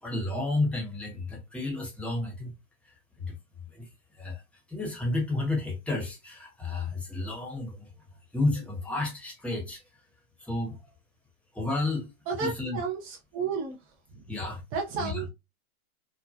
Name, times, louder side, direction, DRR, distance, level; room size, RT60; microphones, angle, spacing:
voice 1, 0.0-2.5 3.2-3.3 3.7-3.9 4.2-4.4 4.7-7.9 8.3-9.8 10.4-10.8 11.5-12.1 12.4-12.8 14.3-14.6 15.0-15.2, left 2 dB, 5° left, 1.0 m, -31 dB
voice 2, 12.3-13.8 14.7-15.3, right 5 dB, 30° right, 0.6 m, -32 dB
2.9 x 2.2 x 2.4 m
hypercardioid pair, 105°, 43 cm